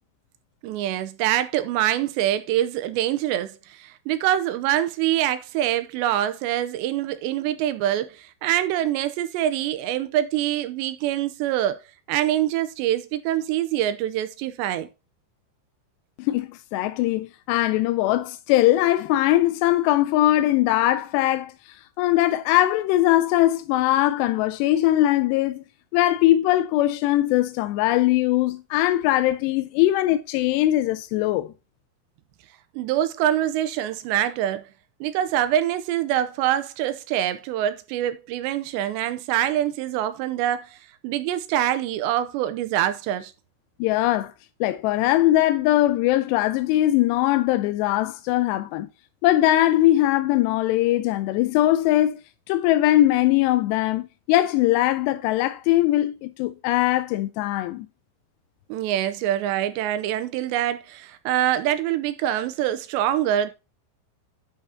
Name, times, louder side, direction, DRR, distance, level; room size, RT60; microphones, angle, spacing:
voice 1, 0.6-11.8 12.1-14.9 32.7-34.6 35.0-40.8 41.0-43.3 58.7-63.5, right 12 dB, 85° right, 2.9 m, -25 dB
voice 2, 16.2-21.5 22.0-25.6 25.9-31.5 43.8-44.3 44.6-48.9 49.2-52.2 52.5-57.9, left 15 dB, 80° left, 2.6 m, -21 dB
10.5 x 5.1 x 4.0 m
omnidirectional pair, 5.2 m